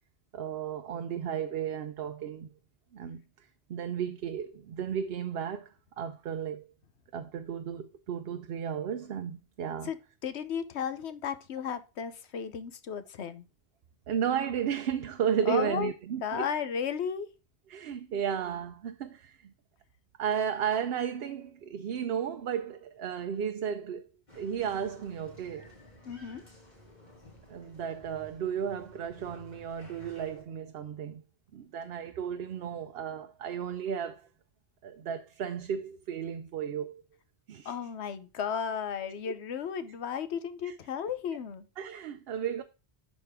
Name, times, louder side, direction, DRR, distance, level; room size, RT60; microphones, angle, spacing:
voice 1, 0.3-2.5 2.9-3.2 3.7-5.7 6.0-6.7 7.1-9.9 14.1-16.4 17.7-19.5 20.2-24.1 24.3-25.7 27.5-31.2 31.5-34.3 34.8-37.0 37.5-37.7 40.6-40.7 41.8-42.6, right 8 dB, 70° right, 0.8 m, -34 dB
voice 2, 10.2-13.4 15.5-15.9 16.2-17.3 26.0-26.4 37.6-41.6, left 7 dB, 90° left, 1.1 m, -34 dB
Applause, 24.3-30.4, left 1 dB, 45° left, 2.8 m, -54 dB
11.5 x 4.2 x 3.5 m
omnidirectional pair, 1.1 m